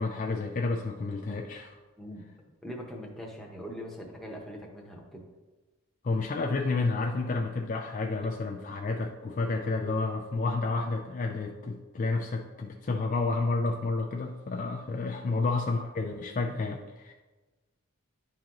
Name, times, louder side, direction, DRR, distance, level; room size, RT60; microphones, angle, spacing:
voice 1, 0.0-1.8 6.0-17.1, left 3 dB, 35° left, 2 dB, 0.3 m, -30 dB
voice 2, 2.6-5.2 15.2-15.4, equal, ahead, -2 dB, 0.8 m, -42 dB
10.5 x 3.8 x 3.0 m, 1.2 s
head